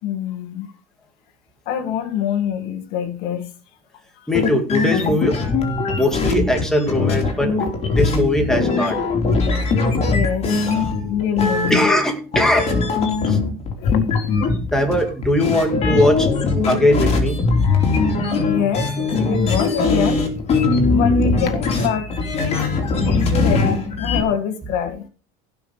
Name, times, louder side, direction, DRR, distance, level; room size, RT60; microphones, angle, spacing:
voice 1, 0.0-0.7 1.7-3.5 4.1-4.3 10.0-10.7 11.0-11.9 13.8-14.4 18.1-20.3 20.9-25.0, left 9 dB, 60° left, 2.0 m, -25 dB
sound 1, 4.3-12.1 12.3-24.2, left 3 dB, 35° left, 3.2 m, -20 dB
voice 2, 4.3-5.4 6.0-7.5 7.9-9.0 11.7-12.7 13.3-13.4 14.7-16.3 16.7-17.4, left 1 dB, 5° left, 2.5 m, -19 dB
16.5 x 6.0 x 5.0 m
cardioid pair, 155°, 19 cm